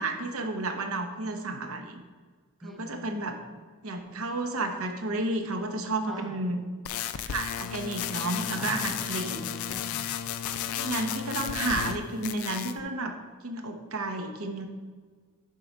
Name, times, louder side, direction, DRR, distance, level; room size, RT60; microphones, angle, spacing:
voice 1, 0.0-2.0 2.6-3.4 3.8-6.6 6.9-9.4 10.8-13.1 13.4-14.7, right 2 dB, 65° right, 5 dB, 0.8 m, -32 dB
voice 2, 2.6-3.6 6.1-6.5 8.6-10.1, right 1 dB, ahead, 2 dB, 0.4 m, -45 dB
sound 1, 6.9-12.0 12.2-12.8, left 9 dB, 65° left, 0.4 m, -33 dB
7.5 x 3.8 x 5.3 m, 1.5 s
head